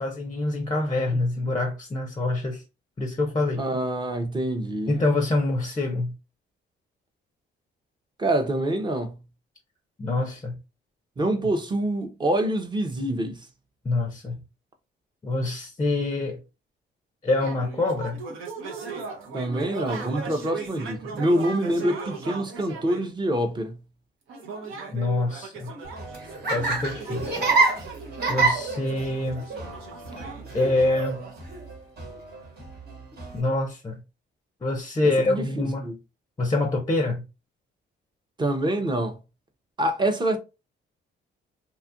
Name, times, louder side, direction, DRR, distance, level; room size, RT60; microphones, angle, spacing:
voice 1, 0.0-2.6 3.0-3.6 4.9-6.1 10.0-10.6 13.8-14.4 15.2-16.4 17.2-18.2 24.9-25.7 26.5-27.5 28.3-29.4 30.5-31.2 33.3-34.0 34.6-35.9 36.4-37.2, left 2 dB, 20° left, 0.5 m, -25 dB
voice 2, 3.6-4.9 8.2-9.1 11.2-13.5 19.3-23.8 35.0-35.4 35.8-36.0 38.4-39.2 39.8-40.4, right 1 dB, 25° right, 0.6 m, -26 dB
sound 1, 17.4-23.1 24.3-31.4, right 4 dB, 85° right, 0.8 m, -38 dB
Laughter, 25.8-33.4, right 3 dB, 55° right, 1.2 m, -28 dB
2.7 x 2.4 x 2.5 m
cardioid pair, 90°, 20 cm